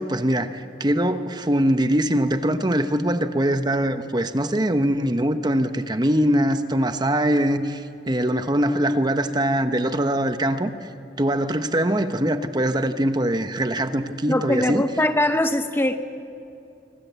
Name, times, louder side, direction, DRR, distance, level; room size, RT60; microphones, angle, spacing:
voice 1, 0.0-10.9 11.2-14.8, right 1 dB, 25° right, 8 dB, 1.0 m, -22 dB
voice 2, 14.3-16.0, left 1 dB, 15° left, 8 dB, 0.8 m, -21 dB
26.5 x 24.5 x 8.3 m, 2.5 s
head